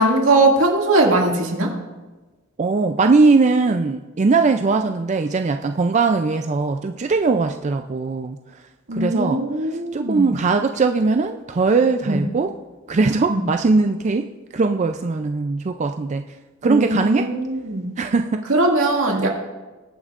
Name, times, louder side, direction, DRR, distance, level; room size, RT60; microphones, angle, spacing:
voice 1, 0.0-1.7 8.9-10.4 12.1-12.2 13.3-13.4 16.6-17.9 18.5-19.3, right 2 dB, 80° right, -1 dB, 2.2 m, -19 dB
voice 2, 2.6-8.4 8.9-9.4 9.7-12.5 12.9-14.3 14.5-16.2 16.6-17.3 18.0-18.4, right 4 dB, 35° right, 6 dB, 0.4 m, -20 dB
20.5 x 8.7 x 2.5 m, 1.2 s
head